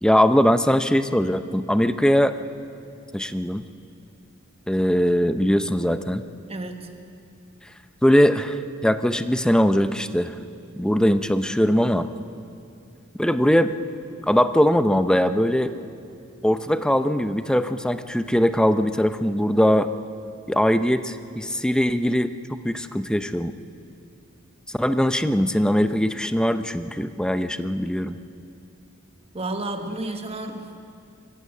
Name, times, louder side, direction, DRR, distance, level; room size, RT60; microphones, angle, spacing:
voice 1, 0.0-2.4 3.1-3.6 4.7-6.2 8.0-10.4 10.8-12.1 13.1-13.7 14.3-15.7 16.4-19.9 20.5-22.3 22.6-23.5 24.7-28.2, equal, 5° left, 10 dB, 0.6 m, -21 dB
voice 2, 6.5-6.9 29.3-30.8, right 2 dB, 30° right, 5 dB, 1.4 m, -31 dB
25.0 x 15.0 x 8.4 m, 2.4 s
head